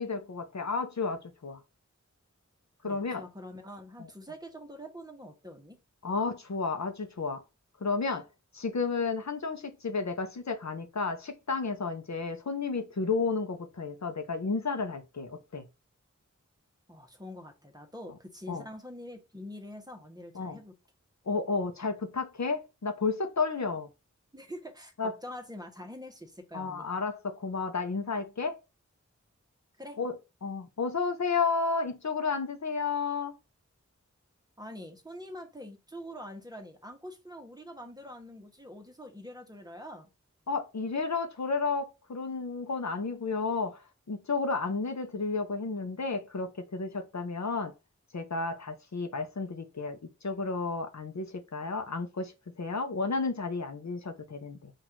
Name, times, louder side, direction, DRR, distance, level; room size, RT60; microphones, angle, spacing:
voice 1, 0.0-1.6 2.8-3.2 4.0-4.1 6.0-7.4 7.8-8.3 8.5-15.7 18.5-18.6 20.3-20.6 21.3-23.9 25.0-25.1 26.5-28.6 30.0-30.1 30.4-33.4 40.5-43.8 44.1-47.7 48.1-54.7, left 4 dB, 65° left, 0.7 m, -32 dB
voice 2, 2.8-5.8 16.9-20.7 24.3-26.9 29.8-30.0 34.6-40.1, equal, 15° right, 1.1 m, -45 dB
4.1 x 2.5 x 4.5 m
wide cardioid pair, 50°, 29 cm